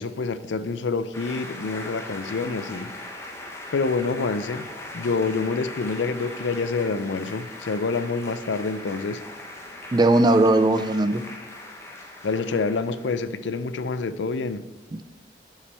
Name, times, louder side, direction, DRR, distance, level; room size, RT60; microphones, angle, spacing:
voice 1, 0.0-2.9 3.7-4.7 4.9-9.2 12.2-14.6, left 4 dB, 85° left, 13 dB, 0.5 m, -27 dB
sound 1, 1.1-13.2, left 1 dB, 15° left, 0.9 m, -40 dB
voice 2, 9.9-11.2 14.9-15.0, right 2 dB, 25° right, 10 dB, 0.4 m, -19 dB
11.0 x 5.8 x 3.4 m, 1.2 s
head